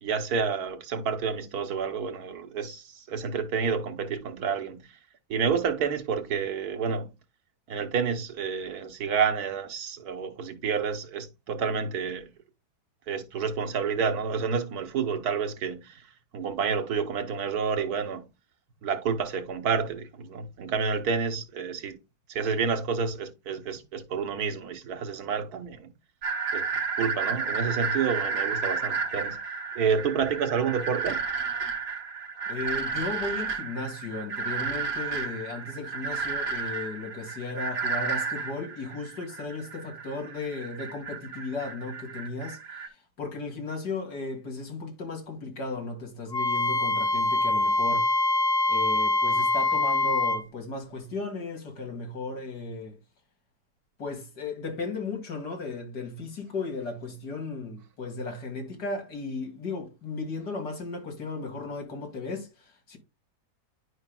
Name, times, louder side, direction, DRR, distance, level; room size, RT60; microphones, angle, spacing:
voice 1, 0.0-4.9 5.3-7.1 7.7-12.3 13.1-16.0 16.3-18.3 18.8-22.0 22.3-25.9 26.5-26.6 27.0-29.4 29.7-31.2, right 6 dB, 70° right, 1.3 m, -29 dB
sound 1, 26.2-42.9, right 5 dB, 45° right, 1.0 m, -32 dB
voice 2, 32.5-48.1 48.7-53.0 54.0-63.0, left 3 dB, 75° left, 2.5 m, -35 dB
Wind instrument woodwind instrument, 46.3-50.4, left 2 dB, 40° left, 0.7 m, -24 dB
10.5 x 5.1 x 2.2 m
omnidirectional pair, 1.8 m